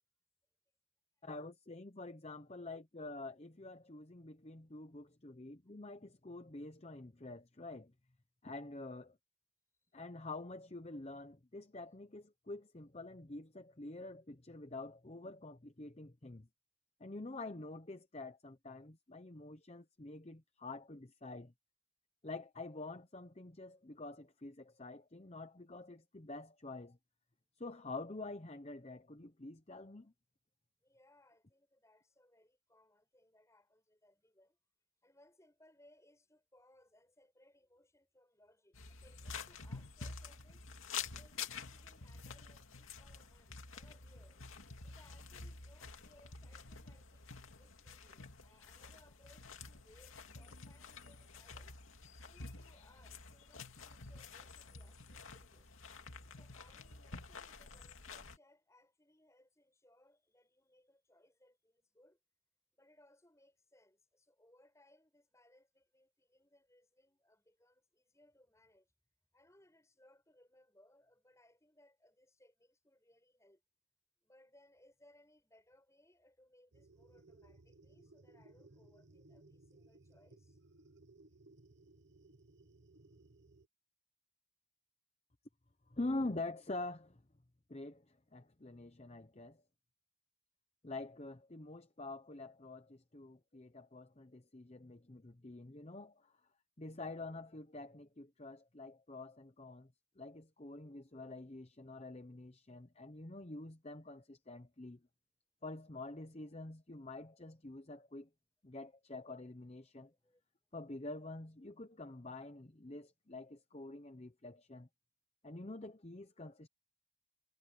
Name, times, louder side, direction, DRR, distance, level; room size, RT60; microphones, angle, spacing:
voice 1, 1.2-7.9 8.4-9.1 9.9-16.5 17.0-21.5 22.2-27.0 27.6-30.1 85.9-87.2 87.7-89.6 90.8-96.3 96.8-105.0 105.6-108.3 108.6-110.1 110.7-114.9 115.4-116.7, left 2 dB, 30° left, 0.8 m, -47 dB
voice 2, 30.8-34.6 35.0-40.7 41.1-44.4 44.8-51.7 52.2-55.7 56.2-62.2 62.7-68.9 69.3-73.6 74.2-80.6 109.9-110.4, left 1 dB, 15° left, 6.6 m, -68 dB
sound 1, 38.7-58.4, left 5 dB, 70° left, 2.6 m, -49 dB
sound 2, 76.7-83.7, right 2 dB, 55° right, 1.1 m, -62 dB
head